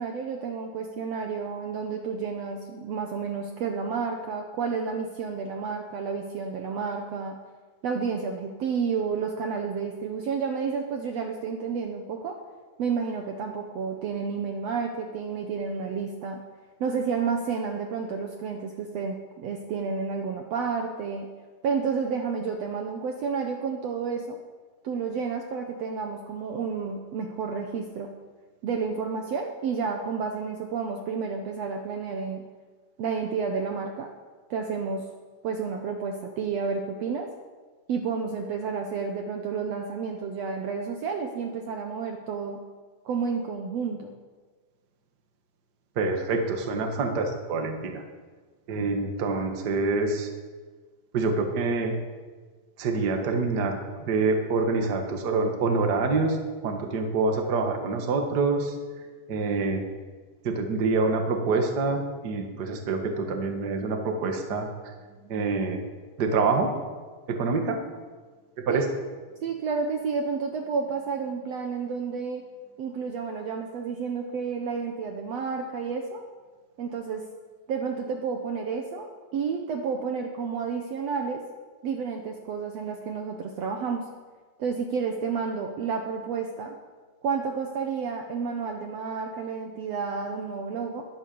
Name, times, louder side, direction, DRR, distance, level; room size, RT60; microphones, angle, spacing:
voice 1, 0.0-7.4 7.8-12.4 12.8-16.4 16.8-21.3 21.6-24.4 24.8-28.1 28.6-32.5 33.0-34.1 34.5-35.1 35.4-37.3 37.9-42.6 43.1-44.2 68.7-68.9 69.4-72.4 72.8-76.2 76.8-77.3 77.7-81.4 81.8-84.1 84.6-86.7 87.2-91.1, right 5 dB, 65° right, 3 dB, 1.9 m, -30 dB
voice 2, 45.9-48.0 48.7-50.3 51.1-52.0 52.8-56.4 56.6-58.7 59.3-59.8 60.4-64.7 65.2-65.8 66.2-66.7 67.3-67.8 68.6-68.8, right 3 dB, 40° right, 4 dB, 1.7 m, -26 dB
21.0 x 9.1 x 7.0 m, 1.4 s
omnidirectional pair, 3.7 m